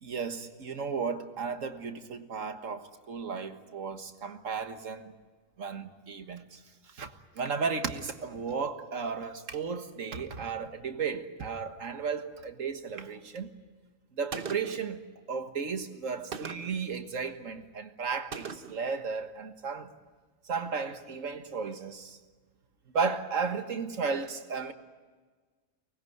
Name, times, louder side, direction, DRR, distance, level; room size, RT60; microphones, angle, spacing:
voice 1, 0.0-5.1 5.6-6.6 6.9-13.5 14.1-19.9 20.5-22.2 22.9-24.7, right 5 dB, 85° right, 1.9 m, -34 dB
Gunshot gunfire, 14.3-14.9 16.3-16.8 18.3-18.9, right 5 dB, 45° right, 1.2 m, -40 dB
24.5 x 20.0 x 9.4 m
omnidirectional pair, 1.3 m